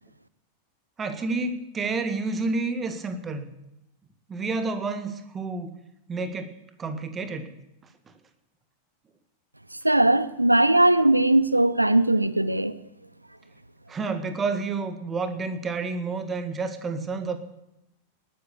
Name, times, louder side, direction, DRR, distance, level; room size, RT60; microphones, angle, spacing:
voice 1, 1.0-3.5 4.3-5.8 6.1-6.5 6.8-7.5 13.9-17.4, right 3 dB, 20° right, 1.8 m, -29 dB
voice 2, 9.7-12.8, right 1 dB, 85° right, 0.7 m, -20 dB
19.5 x 10.5 x 6.9 m
figure-of-eight pair, 90°, 0 cm